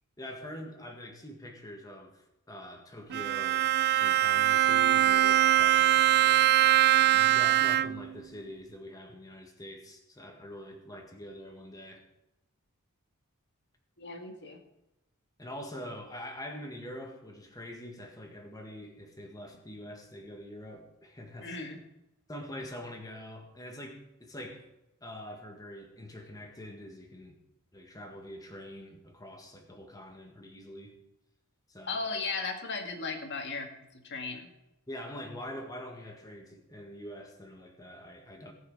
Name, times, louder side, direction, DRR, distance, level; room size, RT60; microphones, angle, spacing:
voice 1, 0.2-3.7 3.9-6.6 7.1-12.1 15.4-21.6 22.3-24.7 25.0-27.4 27.7-31.0 31.7-32.0 34.9-38.5, left 1 dB, 15° left, 3 dB, 1.8 m, -44 dB
Bowed string instrument, 3.1-8.2, right 13 dB, 45° right, 0.3 m, -23 dB
voice 2, 14.0-14.6 21.4-21.8 31.9-34.5, left 4 dB, 55° left, 4 dB, 1.8 m, -36 dB
18.5 x 6.5 x 4.8 m, 0.92 s
head